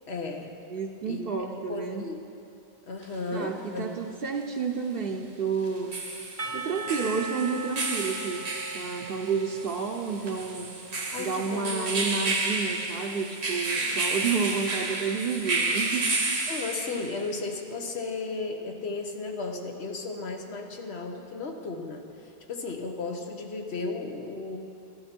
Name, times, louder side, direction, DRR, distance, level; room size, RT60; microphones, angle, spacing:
voice 1, 0.1-0.5 1.0-1.2 1.7-2.2 2.9-3.9 11.1-11.8 13.7-13.9 16.5-24.6, left 3 dB, 90° left, 3 dB, 1.3 m, -34 dB
voice 2, 0.7-2.1 3.3-6.0 6.5-8.5 8.7-10.7 11.2-16.0, right 5 dB, 65° right, 2 dB, 0.9 m, -30 dB
sound 1, 3.0-3.1 5.6-17.2, right 3 dB, 85° right, 1.6 m, -31 dB
Percussion / Church bell, 6.4-11.6, right 4 dB, 40° right, 0.6 m, -39 dB
13.0 x 12.5 x 4.4 m, 2.6 s
omnidirectional pair, 1.1 m